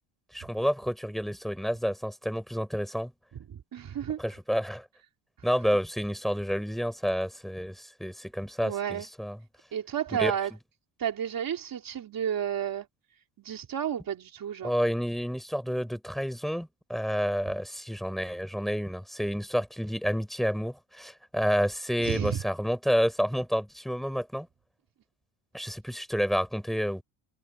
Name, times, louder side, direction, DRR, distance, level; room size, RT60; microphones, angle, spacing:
voice 1, 0.3-3.1 4.2-4.8 5.4-9.4 10.1-10.3 14.6-24.5 25.5-27.0, equal, ahead, 6.4 m, -29 dB
voice 2, 3.5-4.2 8.6-9.1 9.7-10.5 11.0-12.9 13.4-14.7 22.0-22.4, right 9 dB, 45° right, 3.9 m, -31 dB
cardioid pair, 130°, 48 cm